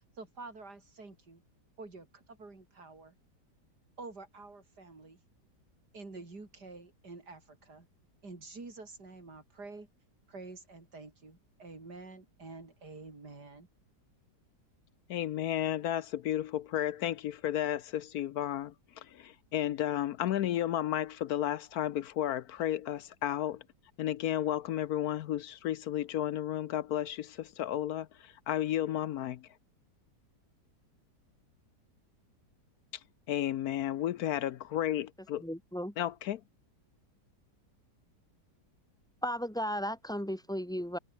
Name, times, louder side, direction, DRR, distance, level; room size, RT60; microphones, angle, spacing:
voice 1, 0.0-1.4 1.8-3.1 4.0-5.2 5.9-7.9 8.2-9.9 10.3-13.7, right 3 dB, 70° right, 5.1 m, -48 dB
voice 2, 15.1-23.6 24.0-29.5 33.3-35.4 36.0-36.4, left 12 dB, 70° left, 1.1 m, -33 dB
voice 3, 35.4-35.9 39.2-41.0, equal, ahead, 1.3 m, -35 dB
omnidirectional pair, 1.8 m